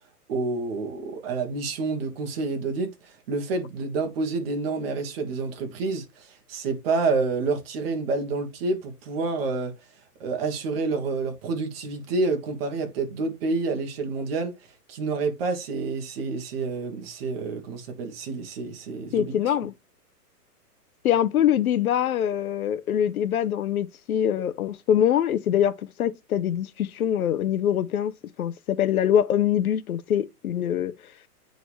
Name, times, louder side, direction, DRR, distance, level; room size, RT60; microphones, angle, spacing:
voice 1, 0.3-9.7 10.2-14.6 14.9-19.5, right 3 dB, 40° right, 1.7 m, -28 dB
voice 2, 19.1-19.7 21.0-28.1 28.4-30.9, left 10 dB, 65° left, 0.8 m, -24 dB
9.1 x 4.0 x 3.1 m
hypercardioid pair, 155°, 47 cm